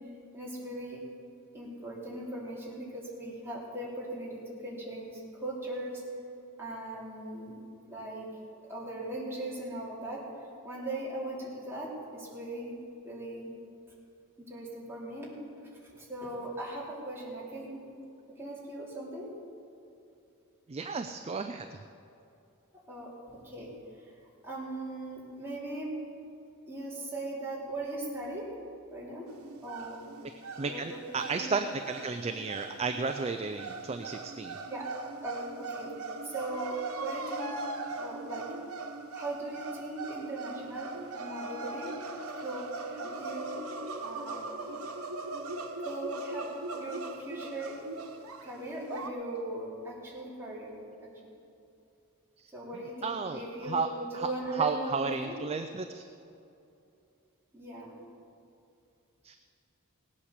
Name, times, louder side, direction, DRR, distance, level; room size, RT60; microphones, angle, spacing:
voice 1, 0.3-1.0 1.5-6.0 6.6-7.6 7.9-8.3 8.7-10.2 10.6-12.8 13.0-13.5 14.4-15.4 15.8-17.8 18.3-19.3 22.9-23.7 24.0-24.1 24.4-26.0 26.7-28.5 28.9-29.3 29.6-30.0 30.6-31.7 34.7-34.9 35.2-37.6 38.0-38.4 39.1-40.9 41.2-42.0 42.4-43.6 44.0-44.4 45.8-46.5 46.8-47.8 48.4-51.1 52.5-55.4 57.5-57.9, right 1 dB, 10° right, -6 dB, 3.3 m, -39 dB
voice 2, 20.7-21.8 30.2-30.3 30.6-34.6 52.4-53.9 54.1-56.0 59.2-59.4, right 4 dB, 30° right, 7 dB, 0.4 m, -33 dB
sound 1, 29.3-49.1, right 3 dB, 90° right, 1.1 m, -40 dB
18.0 x 8.6 x 6.7 m, 2.7 s
head